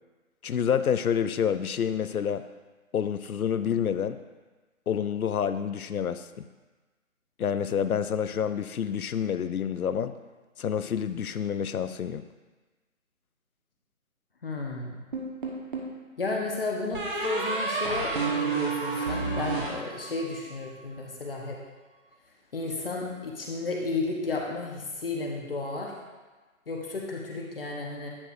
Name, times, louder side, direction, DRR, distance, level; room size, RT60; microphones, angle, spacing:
voice 1, 0.4-2.4 2.9-4.2 4.9-6.4 7.4-10.1 10.6-12.2, left 8 dB, 85° left, 12 dB, 0.6 m, -28 dB
voice 2, 14.4-15.0 16.2-21.6 22.5-25.9 26.7-28.1, left 3 dB, 40° left, -1 dB, 1.0 m, -33 dB
sound 1, 15.1-16.0 16.9-20.4, right 4 dB, 35° right, 1.2 m, -30 dB
9.8 x 6.5 x 2.5 m, 1.3 s
figure-of-eight pair, 160°, 42 cm